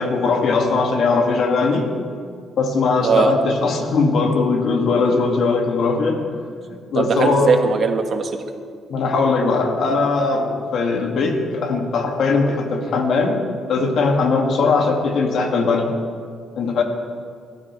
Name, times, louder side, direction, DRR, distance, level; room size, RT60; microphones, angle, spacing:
voice 1, 0.0-1.9 2.6-6.2 6.9-7.6 8.9-15.9 16.6-16.8, left 4 dB, 70° left, 2 dB, 2.2 m, -19 dB
voice 2, 6.9-8.3, right 5 dB, 55° right, 5 dB, 1.6 m, -19 dB
24.0 x 13.0 x 3.3 m, 2.1 s
cardioid pair, 90°, 0 cm